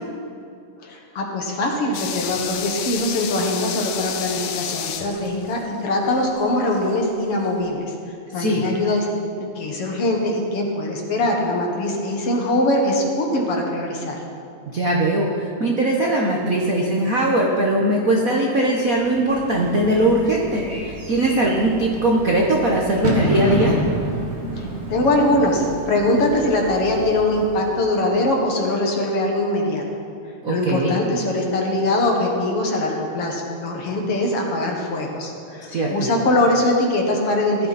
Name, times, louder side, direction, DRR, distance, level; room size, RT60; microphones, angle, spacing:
voice 1, 0.8-7.9 8.3-9.1 9.4-14.2 24.6-29.8 30.5-37.7, left 1 dB, 55° left, 0 dB, 2.2 m, -22 dB
sound 1, 1.9-6.9 7.2-7.3, left 8 dB, 85° left, 2.3 m, -30 dB
voice 2, 14.7-23.8 30.4-31.0 35.7-36.1, right 1 dB, 70° right, -1 dB, 0.8 m, -20 dB
Bird / Fireworks, 19.0-28.2, right 1 dB, 30° right, 1.5 m, -29 dB
16.5 x 12.0 x 4.2 m, 2.5 s
omnidirectional pair, 3.4 m